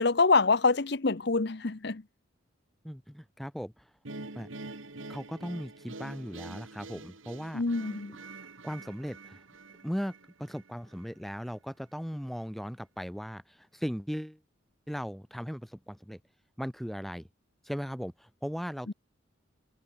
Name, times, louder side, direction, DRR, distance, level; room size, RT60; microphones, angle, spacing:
voice 1, 0.0-2.0 7.5-8.1 18.9-19.0, left 4 dB, 55° left, 0.8 m, -25 dB
voice 2, 2.8-3.8 4.4-4.5 5.1-7.6 8.6-9.4 9.8-14.4 14.9-16.2 16.6-17.3 17.6-18.9, equal, ahead, 2.3 m, -38 dB
sound 1, 4.0-11.1, right 2 dB, 75° right, 2.3 m, -46 dB
head